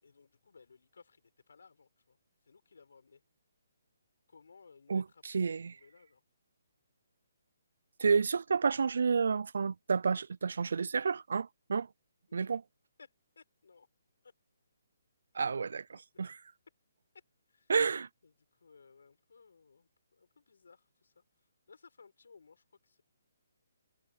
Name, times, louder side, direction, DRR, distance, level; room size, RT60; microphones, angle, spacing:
voice 1, 0.0-2.2 2.4-3.2 4.3-6.2 12.3-12.5 13.0-13.9 14.2-14.3 15.3-15.5 15.9-16.2 17.5-17.7 18.2-23.0, left 5 dB, 70° left, 6.7 m, -61 dB
voice 2, 4.9-5.8 8.0-11.9 12.3-12.6 15.3-15.9 16.2-16.4 17.7-18.1, right 5 dB, 70° right, 0.5 m, -30 dB
figure-of-eight pair, 145°, 0 cm